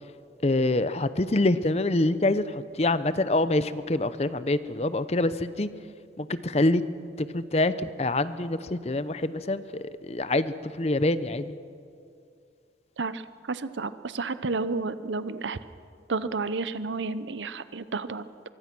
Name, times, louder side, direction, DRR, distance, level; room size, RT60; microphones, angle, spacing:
voice 1, 0.4-5.7 6.2-6.8 7.2-11.5, left 2 dB, 35° left, 14 dB, 0.7 m, -26 dB
voice 2, 13.5-15.6 16.1-18.3, right 3 dB, 85° right, 14 dB, 0.8 m, -31 dB
23.5 x 23.5 x 6.1 m, 2.3 s
head